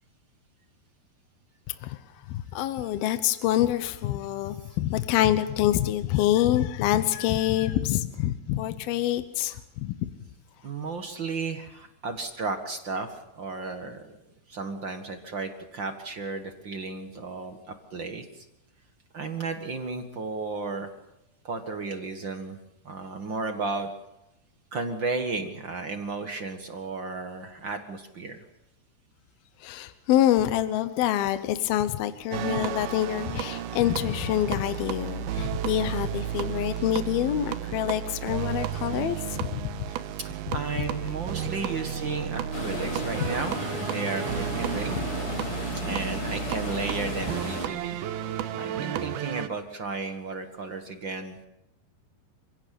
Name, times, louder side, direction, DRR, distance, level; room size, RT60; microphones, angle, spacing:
voice 1, 2.3-10.1 29.6-39.6, left 12 dB, 70° left, 11 dB, 2.7 m, -26 dB
voice 2, 10.6-14.2 14.5-17.6 17.9-18.4 19.1-20.9 21.4-22.6 22.8-23.9 24.7-28.4 40.2-45.0 45.7-48.0 48.5-51.5, right 3 dB, 55° right, 6 dB, 1.3 m, -34 dB
sound 1, 32.3-49.5, right 10 dB, 75° right, 2.8 m, -33 dB
sound 2, 42.5-47.7, left 2 dB, 35° left, 5.1 m, -34 dB
29.0 x 17.0 x 8.5 m, 0.90 s
omnidirectional pair, 4.8 m